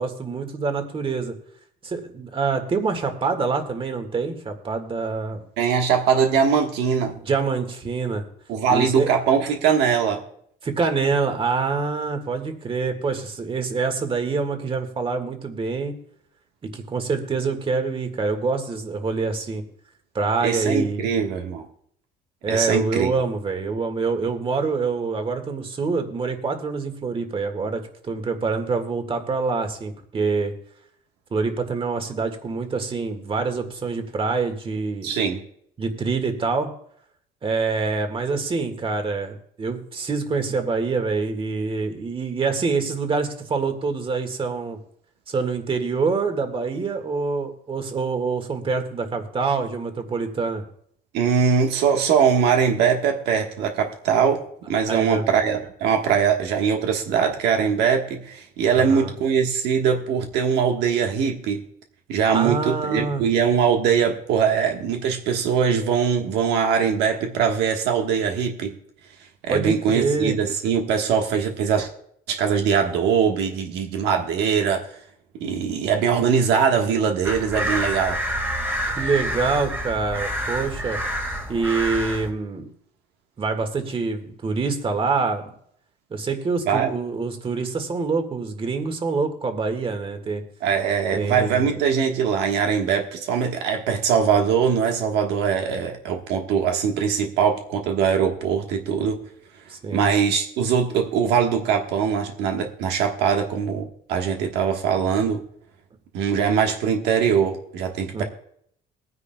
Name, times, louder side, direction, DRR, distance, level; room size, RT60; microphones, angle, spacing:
voice 1, 0.0-1.4 1.8-5.4 7.2-8.2 8.7-9.1 10.6-16.0 16.6-19.6 20.1-21.1 22.4-30.5 31.3-35.1 35.8-36.7 37.4-44.8 45.3-50.6 54.9-55.3 58.7-59.1 62.3-63.2 69.5-70.4 79.0-81.0 81.5-82.7 83.4-85.5 86.1-90.4 91.1-91.8 99.7-100.1 108.1-108.2, right 4 dB, 30° right, 6 dB, 1.7 m, -25 dB
voice 2, 5.6-7.1 8.5-10.2 20.4-21.7 22.5-23.1 35.0-35.4 51.1-61.6 62.1-68.7 69.4-71.9 72.3-74.9 75.3-78.2 86.7-86.9 90.6-99.2 99.9-105.4 106.1-108.2, right 7 dB, 85° right, 3 dB, 1.4 m, -22 dB
sound 1, 77.2-82.3, equal, 10° right, 1.8 m, -28 dB
21.5 x 9.7 x 2.2 m, 0.67 s
cardioid pair, 110°, 17 cm